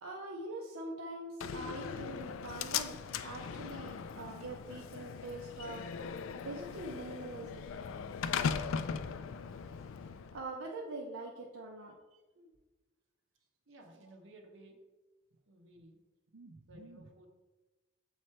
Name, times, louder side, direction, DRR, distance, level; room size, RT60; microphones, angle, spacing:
voice 1, 0.0-5.8 6.4-7.7 10.3-11.9 12.4-12.5 16.3-17.0, right 2 dB, 90° right, -1 dB, 0.7 m, -44 dB
Slam, 1.4-10.4, left 6 dB, 85° left, 0.3 m, -39 dB
voice 2, 13.7-14.8 15.5-16.0 16.7-17.3, right 1 dB, 70° right, 2 dB, 1.0 m, -56 dB
7.4 x 3.2 x 4.3 m, 1.2 s
head